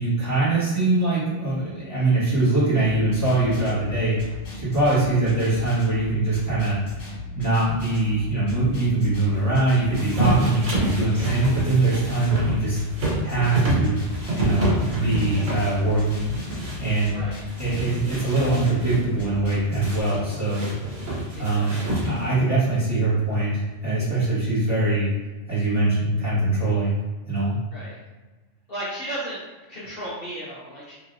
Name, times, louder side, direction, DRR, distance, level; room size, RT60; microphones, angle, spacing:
voice 1, 0.0-4.2 4.5-6.8 7.3-12.8 13.2-13.9 14.3-16.3 16.8-17.2 17.6-20.7 21.4-21.7 22.1-25.1 25.5-26.9 27.3-27.5, right 2 dB, 15° right, -12 dB, 1.5 m, -22 dB
sound 1, 2.8-20.0, left 3 dB, 40° left, 1.8 m, -38 dB
sound 2, 9.9-17.1 17.5-19.0 19.8-22.4, right 1 dB, 80° right, 1.4 m, -28 dB
voice 2, 17.1-17.4 21.3-22.3 27.7-28.0 28.7-29.4 29.7-30.9, right 1 dB, 55° left, -8 dB, 1.0 m, -35 dB
3.2 x 2.7 x 2.6 m, 1.2 s
omnidirectional pair, 1.3 m